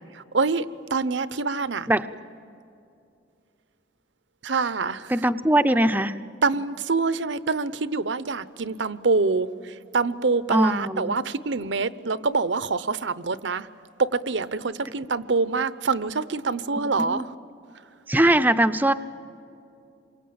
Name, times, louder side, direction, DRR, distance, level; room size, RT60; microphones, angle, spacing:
voice 1, 0.1-1.9 4.4-5.1 6.4-13.7 14.0-17.3, right 4 dB, 70° right, 15 dB, 0.8 m, -25 dB
voice 2, 5.1-6.2 10.5-11.2 17.0-17.3 18.1-18.9, right 1 dB, 10° right, 10 dB, 0.6 m, -21 dB
27.5 x 23.5 x 8.7 m, 2.6 s
head